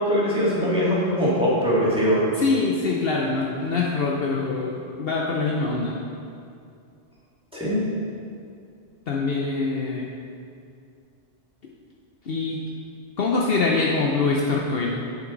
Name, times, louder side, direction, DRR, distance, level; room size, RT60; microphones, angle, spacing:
voice 1, 0.0-2.2 7.5-7.8, equal, 5° right, -9 dB, 2.1 m, -21 dB
voice 2, 2.3-6.0 9.1-10.1 12.3-12.6 13.2-14.9, left 3 dB, 60° left, -2 dB, 0.9 m, -24 dB
10.5 x 5.9 x 3.9 m, 2.5 s
omnidirectional pair, 1.2 m